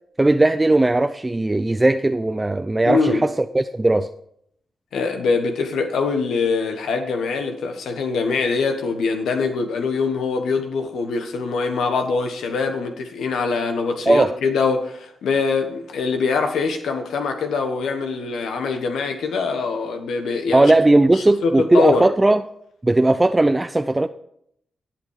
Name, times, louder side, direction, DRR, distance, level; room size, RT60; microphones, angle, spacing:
voice 1, 0.2-4.1 14.1-14.3 20.5-22.4 22.8-24.1, right 2 dB, 20° right, 0.6 m, -17 dB
voice 2, 2.8-3.3 4.9-20.7 21.1-22.1, left 4 dB, 80° left, 1.3 m, -23 dB
18.0 x 5.9 x 4.8 m
supercardioid pair, 50°, 0 cm